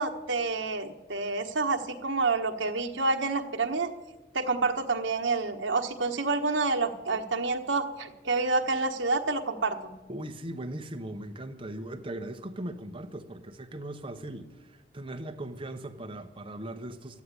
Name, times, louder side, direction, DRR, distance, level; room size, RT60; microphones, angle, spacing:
voice 1, 0.0-3.9 4.3-9.9, right 3 dB, 75° right, 1.3 m, -28 dB
voice 2, 10.1-17.2, right 1 dB, 30° right, 0.9 m, -39 dB
13.0 x 9.5 x 9.7 m
head